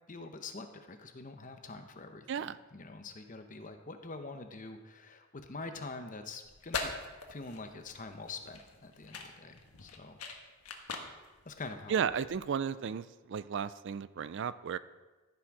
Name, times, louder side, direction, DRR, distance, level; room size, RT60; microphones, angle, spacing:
voice 1, 0.1-6.9 7.3-10.2 11.4-12.0, left 3 dB, 35° left, 7 dB, 0.8 m, -45 dB
sound 1, 6.4-12.5, left 4 dB, 80° left, 1.3 m, -43 dB
voice 2, 11.9-14.8, right 7 dB, 55° right, 16 dB, 0.3 m, -34 dB
14.0 x 6.1 x 4.8 m, 1.2 s
head